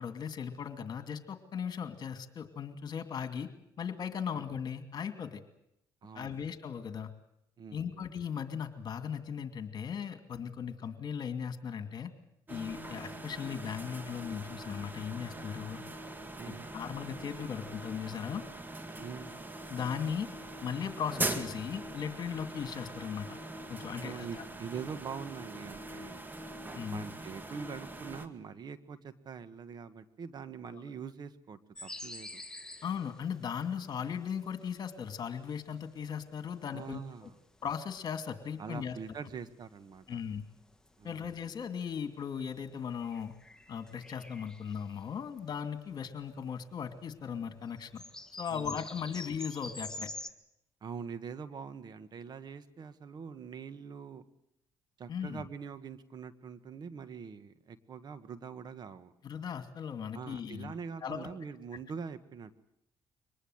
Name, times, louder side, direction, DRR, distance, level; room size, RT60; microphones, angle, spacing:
voice 1, 0.0-3.5 3.8-5.4 6.1-7.1 7.7-12.1 12.5-15.8 16.5-18.4 19.7-20.3 20.6-23.4 23.7-24.4 26.7-27.1 30.7-30.8 32.8-37.3 37.6-39.0 40.1-40.4 41.0-43.3 43.7-48.0 48.4-50.1 55.1-55.4 59.2-60.7 61.0-61.3, left 7 dB, 50° left, 8 dB, 2.4 m, -38 dB
voice 2, 6.0-6.4 7.6-8.0 16.4-16.7 19.0-19.3 23.9-26.3 26.9-32.4 36.7-37.4 38.6-40.2 41.0-41.3 48.5-49.2 50.8-54.2 55.0-59.1 60.1-62.6, right 6 dB, 50° right, 13 dB, 1.5 m, -44 dB
sound 1, 12.5-28.3, right 2 dB, 20° right, 2.0 m, -42 dB
sound 2, 31.8-46.6 47.0-47.1 47.3-50.3, left 2 dB, 5° left, 1.6 m, -48 dB
24.0 x 19.5 x 8.0 m, 0.80 s
supercardioid pair, 80°, 9 cm